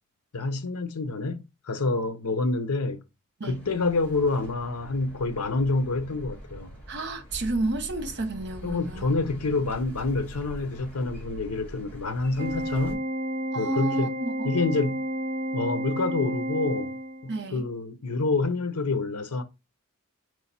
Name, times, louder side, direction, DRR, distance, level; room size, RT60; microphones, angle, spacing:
voice 1, 0.3-3.0 3.4-6.7 8.6-13.0 13.5-14.1 14.4-15.0 15.5-16.9 17.2-19.4, left 3 dB, 80° left, 0.9 m, -27 dB
sound 1, 3.5-13.0, equal, 10° left, 2.5 m, -43 dB
voice 2, 6.9-9.1 13.5-14.5 17.3-17.7, right 2 dB, 50° right, 1.0 m, -31 dB
Organ, 12.4-17.4, equal, 30° right, 0.4 m, -31 dB
5.0 x 4.8 x 4.2 m
head